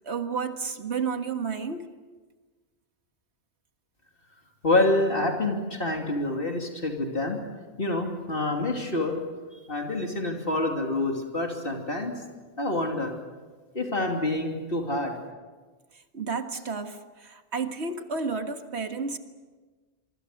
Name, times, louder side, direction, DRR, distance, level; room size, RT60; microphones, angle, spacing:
voice 1, 0.1-1.9 16.1-19.2, right 5 dB, 70° right, 6 dB, 2.0 m, -31 dB
voice 2, 4.6-7.4 7.8-9.2 9.5-12.2 12.6-13.1 13.7-15.1, left 2 dB, 55° left, 1 dB, 3.1 m, -27 dB
27.0 x 24.0 x 6.7 m, 1.3 s
omnidirectional pair, 1.1 m